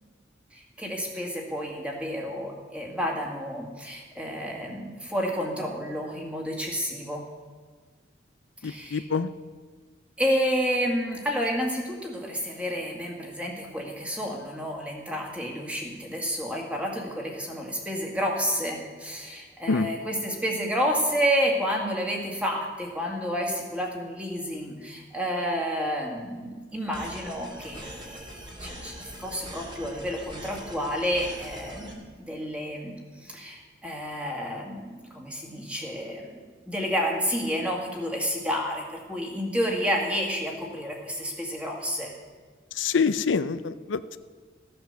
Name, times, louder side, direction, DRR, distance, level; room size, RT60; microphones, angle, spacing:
voice 1, 0.5-7.2 8.6-9.1 10.2-36.4 36.7-42.1, equal, 5° right, -1 dB, 2.0 m, -30 dB
voice 2, 8.6-9.3 19.7-19.9 42.8-44.2, left 5 dB, 90° left, 12 dB, 0.5 m, -26 dB
sound 1, 26.9-31.9, equal, 25° right, 2.3 m, -42 dB
15.0 x 8.8 x 6.8 m, 1.4 s
head